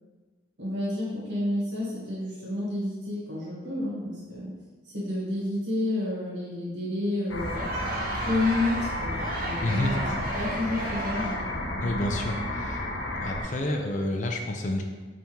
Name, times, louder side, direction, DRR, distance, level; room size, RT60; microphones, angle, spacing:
voice 1, 0.6-4.5 4.8-7.6 8.1-10.1 10.3-11.9, left 1 dB, 70° right, -7 dB, 1.5 m, -30 dB
sound 1, 7.3-13.4, left 1 dB, 80° left, 0.7 m, -32 dB
Crowd, 7.4-11.6, right 3 dB, 50° right, 0.4 m, -35 dB
voice 2, 9.6-9.9 11.8-12.8 13.2-14.8, left 1 dB, 40° left, 3 dB, 0.4 m, -29 dB
4.1 x 3.5 x 3.0 m, 1.3 s
head